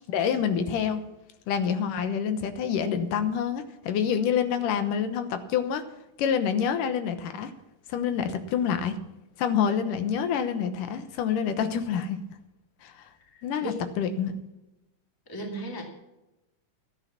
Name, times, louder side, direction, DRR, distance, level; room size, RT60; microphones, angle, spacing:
voice 1, 0.1-1.0 1.5-5.8 6.2-7.5 7.9-9.0 9.4-12.2 12.8-13.1 13.4-14.3, left 7 dB, 80° left, 9 dB, 2.6 m, -27 dB
voice 2, 13.3-13.8 15.3-15.8, right 1 dB, 10° left, 1 dB, 1.6 m, -36 dB
13.5 x 9.6 x 5.8 m, 0.96 s
omnidirectional pair, 3.8 m